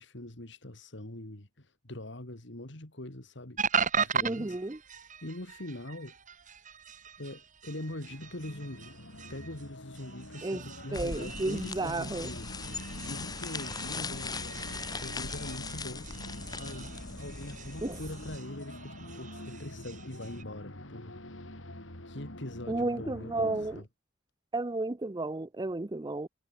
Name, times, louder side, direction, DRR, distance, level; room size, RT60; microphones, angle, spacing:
voice 1, 0.0-3.6 4.0-4.6 5.2-6.1 7.2-8.9 9.3-16.1 16.6-21.2 22.0-23.9, left 1 dB, 65° left, 2.9 m, -43 dB
sound 1, 3.6-20.4, right 6 dB, 40° right, 3.8 m, -39 dB
voice 2, 4.2-4.8 10.4-10.6 10.9-12.3 17.8-18.0 22.7-23.8 24.5-26.3, right 2 dB, 20° right, 0.6 m, -32 dB
sound 2, 7.7-23.8, left 1 dB, 85° left, 6.6 m, -46 dB
sound 3, 10.9-18.4, left 4 dB, 20° left, 1.5 m, -40 dB
head